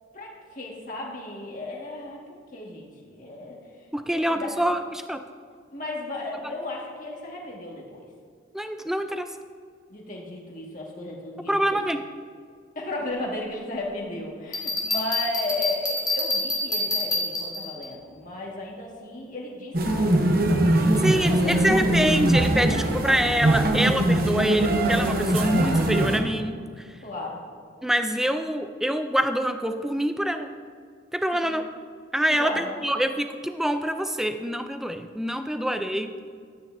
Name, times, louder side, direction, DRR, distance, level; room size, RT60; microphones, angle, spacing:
voice 1, 0.1-3.9 4.1-4.7 5.7-8.1 9.9-11.8 12.8-20.1 20.9-21.8 27.0-27.4 31.3-31.5 32.3-32.8, left 2 dB, 40° left, -2 dB, 1.7 m, -35 dB
voice 2, 3.9-5.2 6.4-6.5 8.5-9.3 11.5-12.1 21.0-26.9 27.8-30.5 31.1-31.6 32.1-36.1, equal, ahead, 8 dB, 0.4 m, -25 dB
Bell, 14.5-17.9, left 2 dB, 20° left, 1.5 m, -27 dB
sound 1, 19.7-26.2, right 1 dB, 45° right, 0.9 m, -22 dB
13.0 x 9.5 x 2.6 m, 2.1 s
head